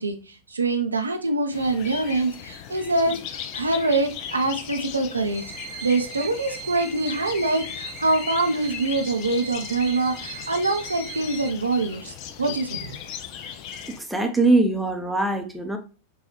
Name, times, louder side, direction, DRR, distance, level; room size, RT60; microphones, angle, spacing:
voice 1, 0.0-13.0, right 2 dB, 80° right, 6 dB, 0.5 m, -25 dB
sound 1, 1.5-14.0, left 9 dB, 40° left, 0.4 m, -37 dB
sound 2, 5.3-11.5, right 6 dB, 40° right, 0.7 m, -40 dB
voice 2, 13.9-15.8, right 2 dB, ahead, 4 dB, 0.7 m, -22 dB
6.0 x 2.3 x 3.0 m, 0.34 s
figure-of-eight pair, 90°, 0 cm